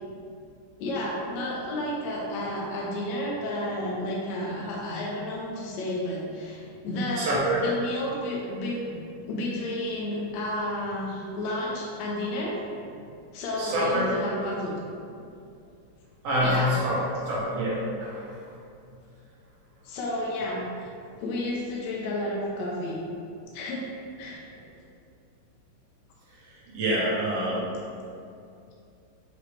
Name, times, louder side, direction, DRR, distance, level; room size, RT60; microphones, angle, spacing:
voice 1, 0.8-9.0 9.3-12.6 13.3-14.7 16.4-16.8 19.8-20.6 21.2-23.0 23.5-23.8 24.2-24.4, left 1 dB, 65° left, -3 dB, 2.2 m, -31 dB
voice 2, 7.2-7.7 13.6-14.1 16.2-17.0 17.3-18.3 26.7-27.7, equal, 60° right, -6 dB, 2.1 m, -26 dB
8.1 x 4.8 x 3.2 m, 2.5 s
omnidirectional pair, 3.7 m